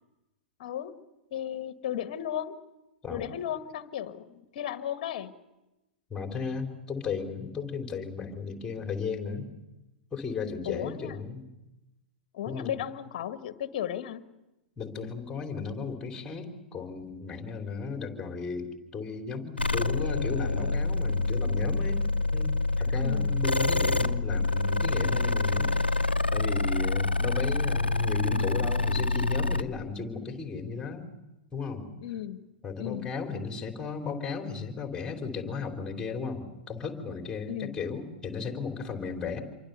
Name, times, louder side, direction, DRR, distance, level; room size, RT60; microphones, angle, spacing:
voice 1, 0.6-0.9 1.3-2.6 3.1-5.3 10.6-11.1 12.3-14.2 23.0-23.3 32.0-32.4 32.8-33.1 37.5-37.8, left 10 dB, 45° left, 10 dB, 1.6 m, -35 dB
voice 2, 6.1-9.5 10.1-11.4 12.5-12.8 14.8-22.0 22.3-26.0 26.3-31.1 31.5-31.9 32.6-39.4, left 5 dB, 10° left, 4 dB, 3.7 m, -35 dB
sound 1, 19.6-29.6, left 3 dB, 85° left, 0.9 m, -27 dB
27.5 x 23.5 x 6.9 m, 1.0 s
figure-of-eight pair, 105°, 5 cm